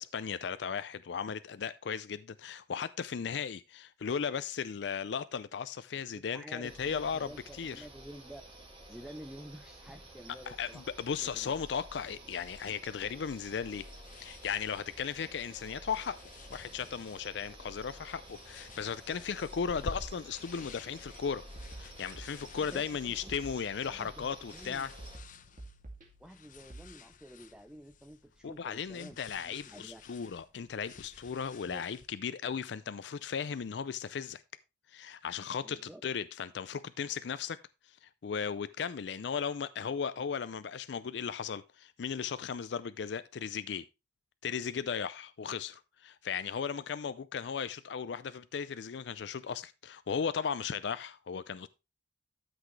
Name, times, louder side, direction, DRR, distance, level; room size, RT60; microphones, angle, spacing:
voice 1, 0.0-7.3 7.6-7.8 10.5-13.9 14.2-16.2 16.5-21.5 21.8-24.9 28.4-34.4 34.9-37.6 37.9-43.8 44.4-51.7, left 6 dB, 65° left, 0.4 m, -36 dB
voice 2, 6.1-8.4 8.9-10.9 11.2-11.5 22.4-23.4 23.9-24.9 26.2-29.2 29.4-30.0 31.7-31.8 35.6-36.0, equal, 5° right, 0.5 m, -50 dB
sound 1, 6.6-25.2, right 1 dB, 30° right, 2.5 m, -51 dB
sound 2, 13.5-32.1, left 3 dB, 45° left, 0.8 m, -52 dB
sound 3, 20.9-21.0 21.6-22.9 23.3-24.3 25.0-26.9, right 2 dB, 45° right, 2.3 m, -51 dB
13.0 x 6.1 x 3.2 m
head